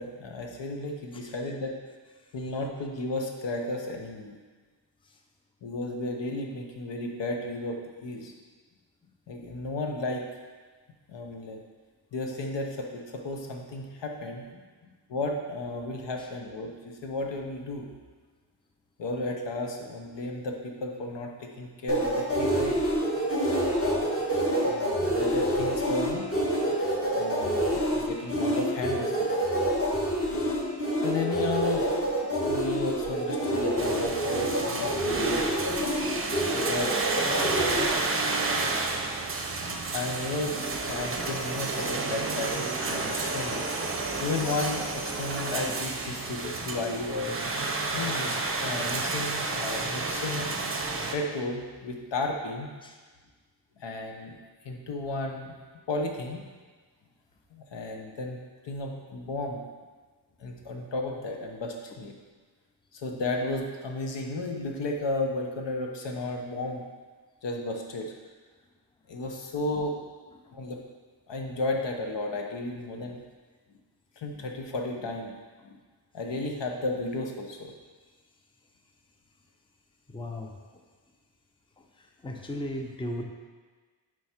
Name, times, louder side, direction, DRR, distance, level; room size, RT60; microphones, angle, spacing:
voice 1, 0.0-1.7 2.3-4.3 5.6-8.3 9.3-10.3 11.1-11.6 12.1-14.4 15.1-17.9 19.0-22.8 24.6-26.3 27.2-29.3 31.0-31.9 32.5-35.5 36.7-37.0 39.9-40.6 40.8-43.8 44.2-47.4 47.9-50.5 51.1-52.7 53.8-54.4 54.6-55.6 55.9-56.5 57.5-58.4 58.6-59.6 60.4-62.1 62.9-66.8 67.4-68.1 69.1-70.0 70.5-70.8 71.3-73.2 74.2-75.4 75.6-75.8 76.1-77.7, left 2 dB, 70° left, 2 dB, 0.9 m, -33 dB
sound 1, 21.9-37.9, right 1 dB, 30° left, 1.6 m, -27 dB
sound 2, 33.8-51.1, right 3 dB, 30° right, 0.7 m, -31 dB
voice 2, 80.1-80.5 82.0-83.2, left 1 dB, 10° left, 2 dB, 0.6 m, -36 dB
4.8 x 4.6 x 4.3 m, 1.4 s
cardioid pair, 60°, 44 cm